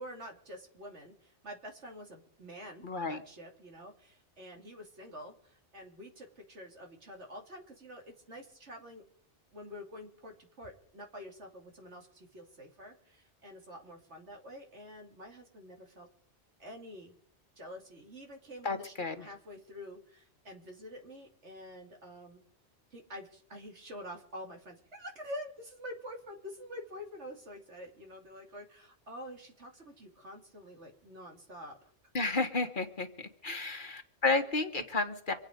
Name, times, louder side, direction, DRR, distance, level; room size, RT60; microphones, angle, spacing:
voice 1, 0.0-9.0 9.5-16.1 16.6-17.1 17.6-22.4 22.9-31.8, equal, 75° right, 2 dB, 3.0 m, -47 dB
voice 2, 2.8-3.2 18.6-19.1 32.1-33.1 33.4-35.3, left 3 dB, 45° left, 7 dB, 1.6 m, -31 dB
25.5 x 8.9 x 5.2 m, 0.62 s
omnidirectional pair, 1.2 m